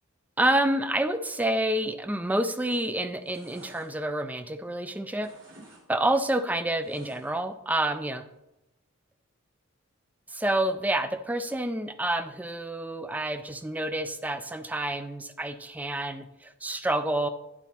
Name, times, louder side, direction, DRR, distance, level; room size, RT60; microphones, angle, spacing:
voice 1, 0.4-5.3 5.9-8.2 10.3-17.3, right 1 dB, 10° right, 10 dB, 0.3 m, -28 dB
sound 1, 3.0-4.8 5.1-5.8 6.1-7.5 7.9-8.0, right 2 dB, 65° right, 2.8 m, -54 dB
11.0 x 4.1 x 4.2 m, 0.96 s
head